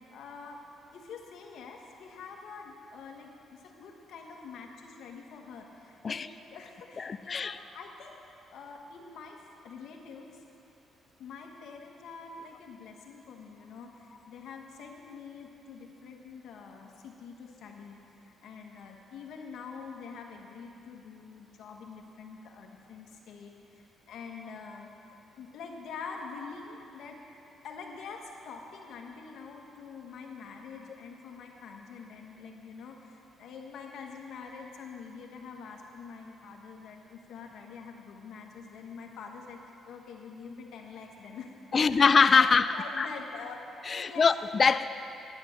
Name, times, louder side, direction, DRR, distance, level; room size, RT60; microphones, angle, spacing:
voice 1, 0.1-0.6 0.9-8.2 8.5-10.3 11.2-18.0 18.4-24.9 25.4-27.2 27.6-42.0 42.7-44.3, left 5 dB, 75° left, 1 dB, 1.5 m, -45 dB
voice 2, 7.0-7.6 41.7-43.1 43.9-45.0, left 5 dB, 40° left, 12 dB, 0.3 m, -23 dB
9.9 x 9.6 x 6.6 m, 2.8 s
cardioid pair, 90°, 0 cm